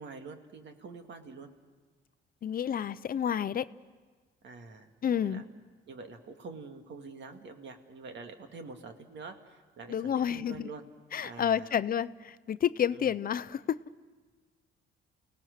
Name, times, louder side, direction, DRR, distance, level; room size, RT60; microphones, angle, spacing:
voice 1, 0.0-1.5 4.4-5.4 5.9-10.8 11.2-11.7 12.9-13.2, right 4 dB, 65° right, 5 dB, 2.1 m, -46 dB
voice 2, 2.4-3.7 5.0-5.4 9.9-10.7 11.1-13.8, left 9 dB, 45° left, 15 dB, 0.6 m, -30 dB
29.5 x 18.0 x 6.5 m, 1.4 s
cardioid pair, 90°, 20 cm